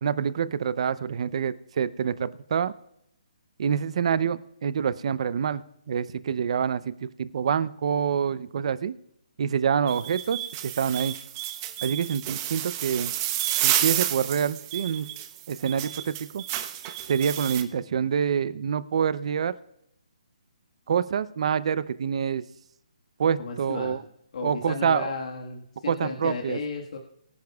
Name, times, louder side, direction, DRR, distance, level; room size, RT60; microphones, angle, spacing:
voice 1, 0.0-2.7 3.6-8.9 9.4-11.2 11.8-13.1 13.6-15.1 15.5-16.4 17.1-19.5 20.9-22.4 23.2-24.0 24.4-25.1 25.9-26.6, right 7 dB, 50° right, 16 dB, 0.6 m, -26 dB
sound 1, 9.9-17.6, right 13 dB, 25° right, 1.0 m, -30 dB
voice 2, 23.4-24.0 24.3-27.0, left 4 dB, 60° left, 1 dB, 1.6 m, -34 dB
23.0 x 10.5 x 2.3 m, 0.77 s
hypercardioid pair, 155°, 4 cm